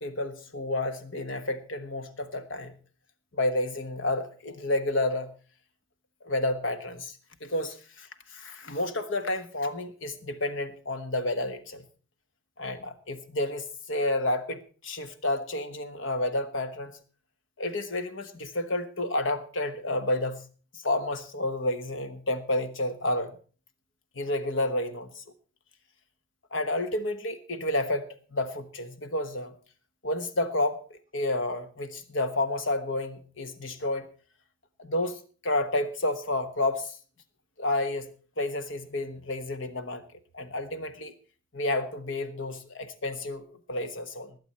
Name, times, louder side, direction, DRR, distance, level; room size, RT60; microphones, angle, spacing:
voice 1, 0.0-2.7 3.3-5.3 6.2-11.9 12.6-17.0 17.6-20.5 20.7-23.4 24.1-25.2 26.5-28.1 28.3-29.6 30.0-34.1 34.8-37.0 37.6-38.1 38.4-40.0 40.3-41.1 41.5-44.4, left 2 dB, 65° left, 9 dB, 1.3 m, -30 dB
20.0 x 8.0 x 4.4 m, 0.39 s
head